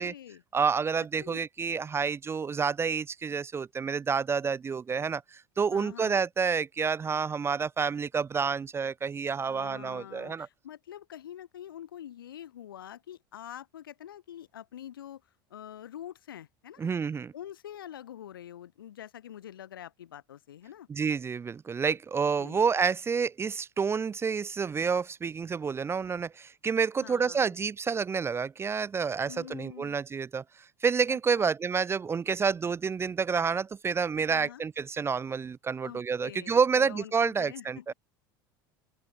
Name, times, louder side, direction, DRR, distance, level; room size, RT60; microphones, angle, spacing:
voice 1, 0.0-0.4 1.2-1.4 5.7-6.2 9.5-15.2 15.5-16.9 17.3-20.9 22.4-22.6 27.0-27.5 29.3-30.0 31.1-31.5 34.3-34.6 35.8-37.9, left 11 dB, 85° left, 2.0 m, -45 dB
voice 2, 0.5-10.5 16.8-17.3 20.9-37.9, right 5 dB, 20° right, 0.4 m, -29 dB
open air
hypercardioid pair, 75°, 11 cm